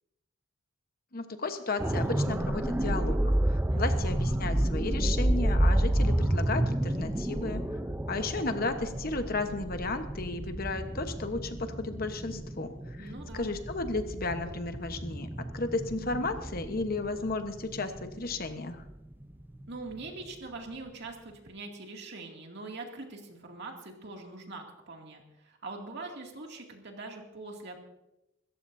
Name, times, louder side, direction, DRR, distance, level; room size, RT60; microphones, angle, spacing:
voice 1, 1.1-3.2 3.5-7.6 8.1-15.3 15.5-18.8, left 3 dB, 45° left, 7 dB, 1.1 m, -34 dB
sound 1, 1.8-19.7 20.0-20.2, right 1 dB, 10° right, 0.6 m, -30 dB
voice 2, 13.0-13.5 19.7-27.8, right 3 dB, 55° right, 1 dB, 2.4 m, -43 dB
26.0 x 14.0 x 2.7 m, 0.93 s
head